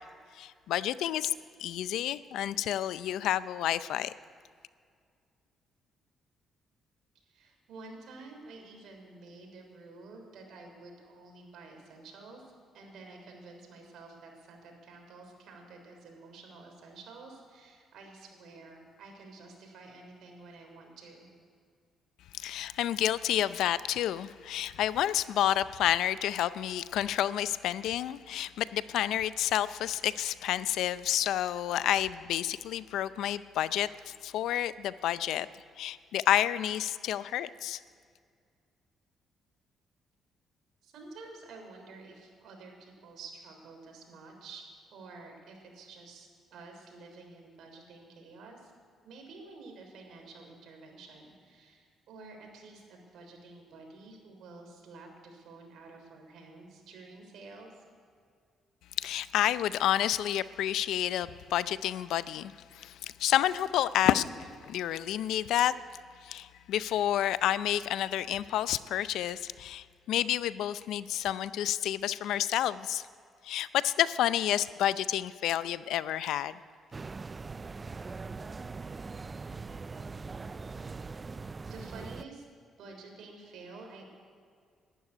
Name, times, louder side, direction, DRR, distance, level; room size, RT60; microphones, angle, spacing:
voice 1, 0.3-1.3 1.6-4.1 22.3-35.5 35.8-37.8 59.0-65.7 66.2-73.1 73.4-76.6, left 12 dB, 85° left, 16 dB, 0.5 m, -30 dB
voice 2, 7.1-21.3 40.8-44.6 44.9-48.7 49.0-57.8 81.7-82.4 82.8-84.0, right 3 dB, 75° right, 2 dB, 3.5 m, -50 dB
sound 1, 76.9-82.2, right 4 dB, 30° right, 0.4 m, -41 dB
12.0 x 11.0 x 9.9 m, 2.2 s
cardioid pair, 90°, 0 cm